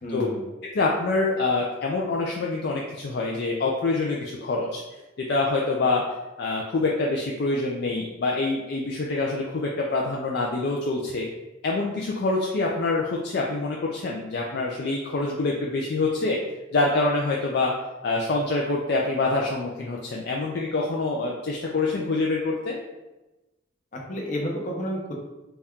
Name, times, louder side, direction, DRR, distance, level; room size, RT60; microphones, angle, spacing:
voice 1, 0.0-0.4 23.9-25.1, equal, 45° left, -1 dB, 0.8 m, -31 dB
voice 2, 0.6-4.8 5.2-6.0 6.4-11.3 11.6-16.4 16.7-17.8 18.0-22.8, left 3 dB, 60° left, -2 dB, 0.4 m, -26 dB
4.1 x 2.3 x 3.5 m, 1.0 s
head